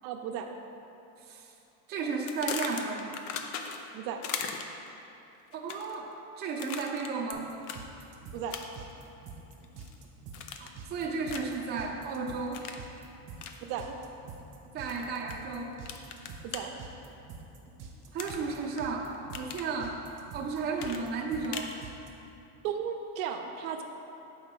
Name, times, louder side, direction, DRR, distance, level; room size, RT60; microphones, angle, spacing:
voice 1, 0.0-0.6 3.9-4.2 8.3-8.6 13.7-13.9 16.4-16.8 20.8-20.9 22.6-23.8, right 8 dB, 60° right, 4 dB, 0.6 m, -35 dB
voice 2, 1.2-1.5 1.9-3.2 5.5-6.1 6.4-7.5 10.6-12.6 14.7-15.7 18.1-19.1 19.3-20.0 20.3-21.7, right 4 dB, 20° right, -2 dB, 0.5 m, -33 dB
sound 1, 2.3-3.9 4.2-4.9 5.5-6.0 6.6-7.4 7.6-7.8 8.5-8.9 9.3-9.9 10.3-10.8 11.3-11.6 12.5-12.8 13.4-13.6 14.9-15.3 15.9-16.6 18.2-18.8 19.1-19.7 20.8-21.8, left 7 dB, 80° left, 0.7 m, -38 dB
sound 2, 7.3-22.1, right 5 dB, 45° right, 1.0 m, -47 dB
7.1 x 5.0 x 3.7 m, 2.9 s
supercardioid pair, 150°, 47 cm